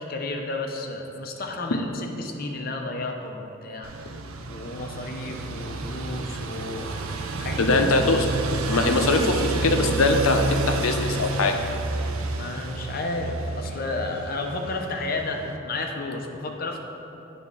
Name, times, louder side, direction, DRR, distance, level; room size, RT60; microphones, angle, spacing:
voice 1, 0.0-4.2 4.5-7.1 7.4-7.9 12.3-16.8, left 2 dB, 45° left, 2 dB, 0.6 m, -32 dB
sound 1, 3.8-15.6, right 3 dB, 85° right, 0.5 m, -30 dB
voice 2, 7.6-8.3 8.7-11.6, left 2 dB, 85° left, 5 dB, 0.6 m, -22 dB
9.3 x 3.6 x 5.4 m, 2.9 s
head